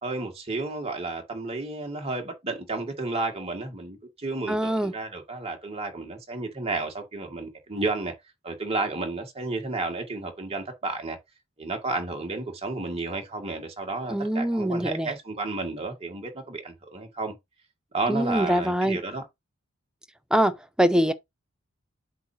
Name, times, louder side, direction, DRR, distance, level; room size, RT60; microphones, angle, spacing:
voice 1, 0.0-8.1 8.4-11.2 11.6-17.3 17.9-19.2, right 3 dB, 30° right, 2.0 m, -32 dB
voice 2, 4.5-4.9 14.1-15.1 18.1-19.0 20.3-21.1, equal, 5° right, 0.6 m, -23 dB
7.9 x 2.8 x 5.7 m
head